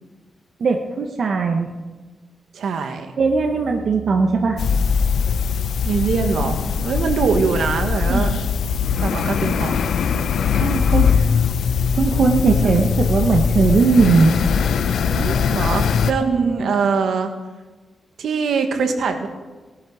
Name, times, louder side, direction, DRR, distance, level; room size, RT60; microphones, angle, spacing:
voice 1, 0.6-1.7 3.2-4.6 5.3-5.4 8.1-8.4 10.5-11.1 11.9-14.3 16.2-16.7, right 4 dB, 60° right, 3 dB, 1.2 m, -19 dB
voice 2, 2.5-3.1 5.8-8.3 9.0-10.4 12.4-12.8 15.1-17.3 18.2-19.3, right 5 dB, 80° right, 6 dB, 1.7 m, -23 dB
sound 1, 4.6-16.1, left 6 dB, 85° left, 0.7 m, -20 dB
19.5 x 12.0 x 4.9 m, 1.3 s
wide cardioid pair, 120°, 0 cm